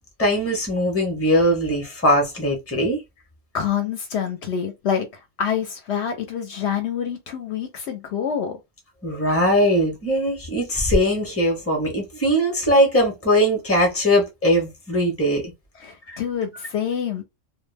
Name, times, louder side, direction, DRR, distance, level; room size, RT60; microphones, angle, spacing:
voice 1, 0.2-3.0 9.0-15.4 16.1-16.2, equal, 15° left, 0.7 m, -20 dB
voice 2, 3.5-5.1 5.4-8.6 15.8-17.2, left 8 dB, 70° left, 0.8 m, -26 dB
2.2 x 2.1 x 3.2 m
omnidirectional pair, 1.2 m